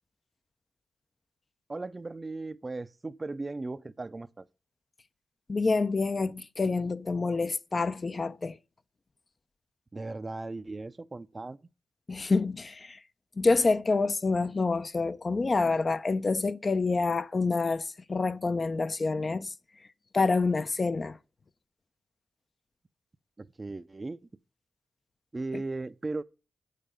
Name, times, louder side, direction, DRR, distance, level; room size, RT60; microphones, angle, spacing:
voice 1, 1.7-4.4 9.9-11.6 23.4-24.2 25.3-26.2, right 3 dB, 35° right, 0.6 m, -37 dB
voice 2, 5.5-8.6 12.1-13.0 13.4-17.8 18.1-19.5 20.1-21.2, left 3 dB, 40° left, 0.6 m, -27 dB
8.7 x 6.7 x 5.2 m
cardioid pair, 55°, 0 cm